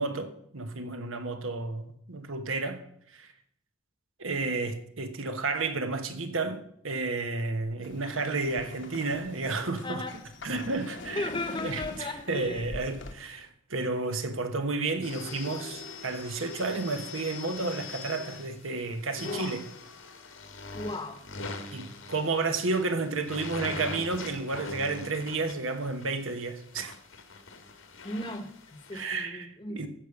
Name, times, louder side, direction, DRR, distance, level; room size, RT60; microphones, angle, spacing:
voice 1, 0.0-2.8 3.1-3.3 4.2-10.0 10.4-11.3 11.6-19.6 21.7-26.9 28.9-29.9, right 3 dB, 80° right, 1.3 m, -31 dB
sound 1, 7.8-13.1, left 2 dB, 60° left, 1.1 m, -44 dB
voice 2, 9.8-10.2 11.1-12.7 19.2-19.6 20.7-21.2 28.0-29.9, left 2 dB, 25° left, 1.0 m, -36 dB
sound 2, 15.0-29.0, left 4 dB, 80° left, 1.7 m, -42 dB
14.5 x 5.2 x 7.2 m
head